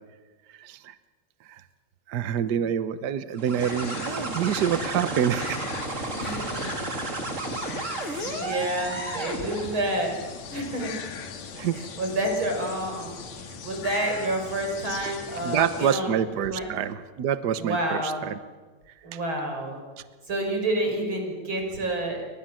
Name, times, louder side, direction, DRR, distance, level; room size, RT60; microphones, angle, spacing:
voice 1, 0.6-0.9 1.5-1.6 2.1-5.6 6.7-6.8 11.6-11.9 15.4-18.4, right 9 dB, 80° right, 12 dB, 0.9 m, -27 dB
sound 1, 3.4-9.9, right 2 dB, 25° right, 2.8 m, -33 dB
sound 2, 3.6-16.0, left 5 dB, 65° left, 3.2 m, -39 dB
voice 2, 6.1-6.7 8.0-10.1 10.5-10.9 11.7-13.2 13.6-16.7 17.6-18.3 19.0-19.8 20.3-22.2, right 1 dB, 40° right, 3 dB, 6.3 m, -29 dB
29.5 x 25.0 x 7.7 m, 1.4 s
omnidirectional pair, 3.3 m